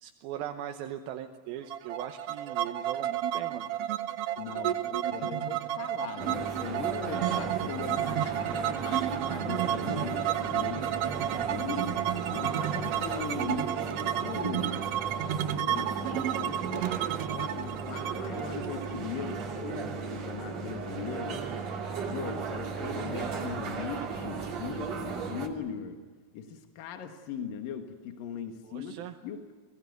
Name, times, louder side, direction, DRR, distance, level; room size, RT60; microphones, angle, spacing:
voice 1, 0.0-3.7 11.2-11.6 22.8-23.5 28.6-29.2, right 10 dB, 90° right, 5 dB, 2.9 m, -40 dB
sound 1, 1.7-19.4, right 11 dB, 65° right, 1.5 m, -32 dB
voice 2, 4.4-10.9 11.5-14.9 15.5-21.4 22.0-26.0 26.3-29.5, left 7 dB, 75° left, 6 dB, 3.2 m, -39 dB
sound 2, 6.2-25.5, right 5 dB, 50° right, 3.5 m, -36 dB
29.5 x 19.0 x 9.4 m, 1.5 s
omnidirectional pair, 4.1 m